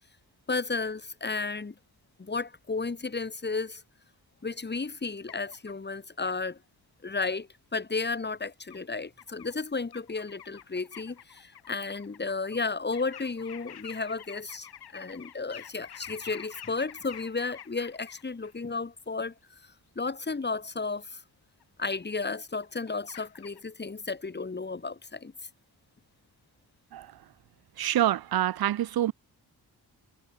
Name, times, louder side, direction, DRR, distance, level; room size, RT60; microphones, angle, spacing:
voice 1, 0.5-1.7 2.2-3.8 4.4-6.6 7.0-14.7 14.9-19.3 20.0-21.2 21.8-25.3, left 4 dB, 30° left, 2.4 m, -33 dB
sound 1, 5.3-5.7 6.2-6.3 7.7-7.8 8.7-8.8 9.2-9.6 9.9-12.6 12.9-18.5 21.0-21.1 21.6-22.3 22.6-23.6, left 10 dB, 85° left, 2.3 m, -48 dB
voice 2, 27.8-29.1, right 12 dB, 75° right, 0.7 m, -26 dB
wide cardioid pair, 110°, 37 cm